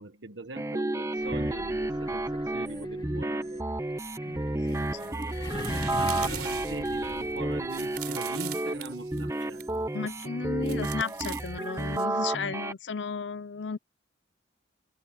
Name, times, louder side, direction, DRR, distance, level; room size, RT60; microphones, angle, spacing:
voice 1, 0.0-3.7 4.7-9.7, right 3 dB, 85° right, 1.4 m, -43 dB
sound 1, 0.6-12.7, right 1 dB, 15° right, 0.6 m, -31 dB
sound 2, 1.1-8.0, left 1 dB, 25° left, 1.2 m, -40 dB
voice 2, 4.3-5.1 9.9-13.8, left 5 dB, 80° left, 0.7 m, -35 dB
sound 3, 4.7-9.8 10.6-12.0, right 11 dB, 60° right, 4.2 m, -42 dB
head